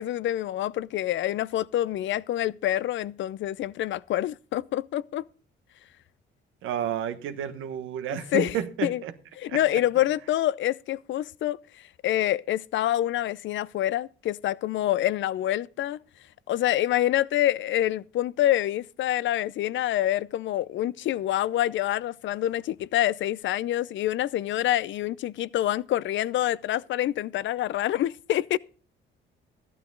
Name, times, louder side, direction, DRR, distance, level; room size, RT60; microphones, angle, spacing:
voice 1, 0.0-5.2 8.1-8.6 8.8-9.0 9.4-11.6 12.0-16.0 16.5-28.6, left 13 dB, 70° left, 0.6 m, -26 dB
voice 2, 6.6-9.1 9.5-9.6, right 9 dB, 85° right, 1.2 m, -31 dB
13.5 x 11.5 x 3.8 m
cardioid pair, 90°, 20 cm